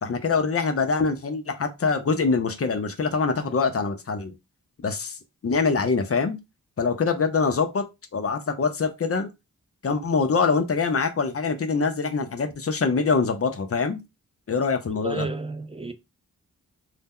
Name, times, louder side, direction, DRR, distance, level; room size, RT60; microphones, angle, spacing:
voice 1, 0.0-4.3 4.8-5.2 5.4-6.4 6.8-7.8 8.1-9.3 9.8-14.0 14.5-15.3, left 4 dB, 40° left, 0.6 m, -24 dB
voice 2, 15.0-15.9, right 3 dB, 15° right, 0.5 m, -31 dB
2.7 x 2.1 x 3.6 m
cardioid pair, 65°, 34 cm